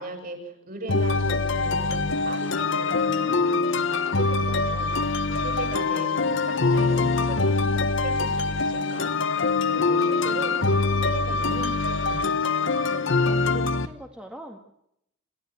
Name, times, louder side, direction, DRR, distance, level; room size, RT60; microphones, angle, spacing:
voice 1, 0.0-3.4 3.7-7.5 7.8-9.1 9.6-12.5, right 1 dB, 40° right, 5 dB, 7.0 m, -38 dB
sound 1, 0.9-13.9, left 3 dB, 60° left, 1.1 m, -24 dB
voice 2, 12.9-14.6, equal, 5° right, 2 dB, 1.7 m, -42 dB
28.0 x 15.0 x 7.9 m, 0.77 s
head